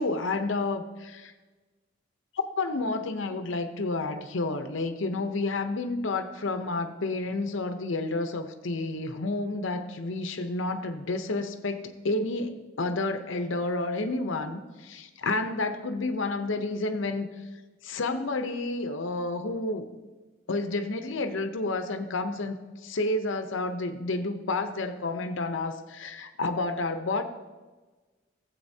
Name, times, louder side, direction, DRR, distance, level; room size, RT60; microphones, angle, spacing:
voice 1, 0.0-1.3 2.4-17.3 17.8-19.9 20.5-22.6 22.8-27.2, left 2 dB, 70° left, 8 dB, 0.7 m, -30 dB
13.0 x 7.8 x 2.7 m, 1.3 s
head